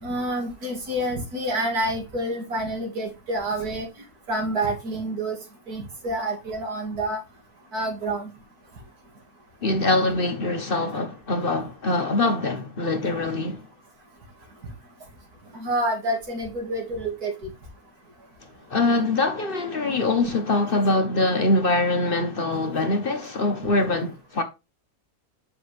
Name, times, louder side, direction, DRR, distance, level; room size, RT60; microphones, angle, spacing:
voice 1, 0.0-3.9 4.3-5.4 5.7-7.2 7.7-8.3 15.5-17.5, right 1 dB, 85° right, 2.8 m, -28 dB
voice 2, 9.6-13.7 18.7-24.4, left 2 dB, 40° left, 1.0 m, -23 dB
7.6 x 5.9 x 3.1 m
omnidirectional pair, 1.6 m